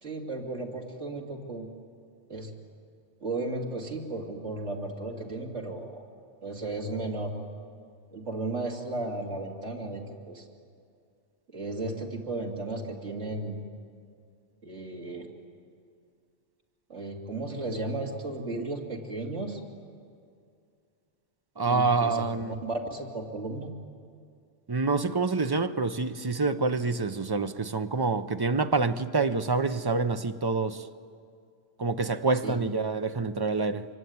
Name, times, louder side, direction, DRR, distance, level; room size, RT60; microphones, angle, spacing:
voice 1, 0.0-1.7 2.3-2.5 3.2-6.0 6.4-7.3 8.1-10.5 11.5-13.6 14.6-15.3 16.9-19.6 21.7-23.7 32.4-32.6, right 2 dB, 85° right, 3.0 m, -34 dB
voice 2, 21.6-22.5 24.7-30.9 31.8-33.9, right 3 dB, 25° right, 0.6 m, -27 dB
25.5 x 24.5 x 9.5 m
omnidirectional pair, 1.2 m